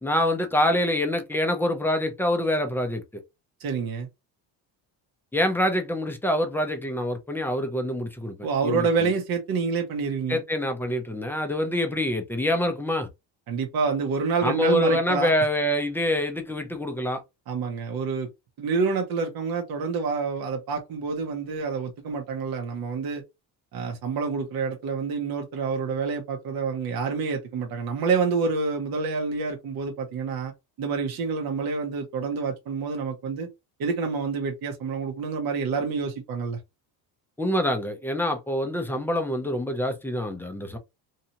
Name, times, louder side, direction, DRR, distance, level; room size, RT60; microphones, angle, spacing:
voice 1, 0.0-3.2 5.3-8.3 8.6-9.1 10.3-13.1 14.4-17.2 37.4-40.8, left 1 dB, 5° left, 0.5 m, -26 dB
voice 2, 3.6-4.1 8.4-10.4 13.5-15.3 17.5-18.3 18.6-23.2 23.7-30.5 30.8-33.5 33.8-36.6, right 5 dB, 50° right, 0.9 m, -27 dB
2.8 x 2.3 x 2.8 m
cardioid pair, 110°, 46 cm